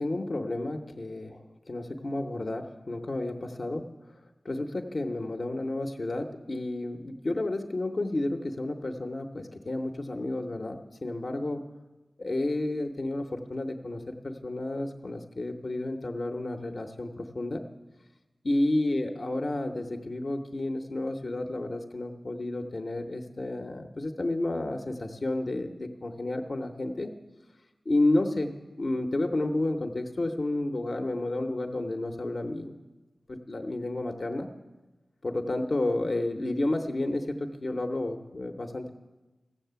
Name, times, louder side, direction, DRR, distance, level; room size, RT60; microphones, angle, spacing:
voice 1, 0.0-3.9 4.4-11.6 12.2-17.6 18.4-27.1 27.9-28.5 28.8-32.7 33.3-34.5 35.2-38.9, left 2 dB, 65° left, 4 dB, 0.8 m, -31 dB
15.0 x 7.4 x 6.8 m, 1.1 s
cardioid pair, 40°, 0 cm